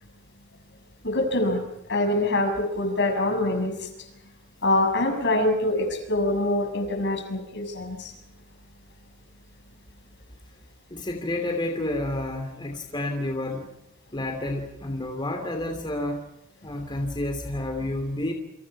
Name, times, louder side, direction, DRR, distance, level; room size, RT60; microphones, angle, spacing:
voice 1, 1.0-1.6 1.9-3.9 4.6-8.1, left 1 dB, 60° left, 5 dB, 6.6 m, -24 dB
voice 2, 10.9-13.7 14.1-16.2 16.6-18.3, left 1 dB, 25° left, 4 dB, 2.9 m, -30 dB
29.0 x 27.5 x 4.7 m, 0.85 s
head